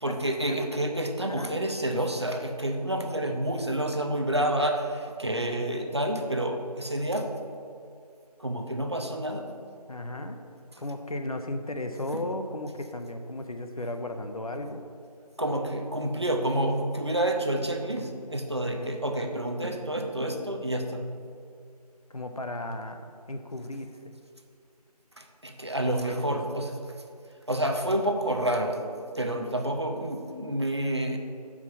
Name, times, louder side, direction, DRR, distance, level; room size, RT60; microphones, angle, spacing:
voice 1, 0.0-7.3 8.4-9.5 12.1-12.2 15.4-21.1 25.2-26.8 27.5-31.2, right 1 dB, 40° right, 3 dB, 0.6 m, -29 dB
voice 2, 9.9-10.4 10.8-14.8 18.6-18.9 22.1-24.2 25.8-26.6, left 1 dB, 60° left, 6 dB, 0.6 m, -35 dB
5.9 x 4.8 x 5.4 m, 2.4 s
figure-of-eight pair, 170°, 21 cm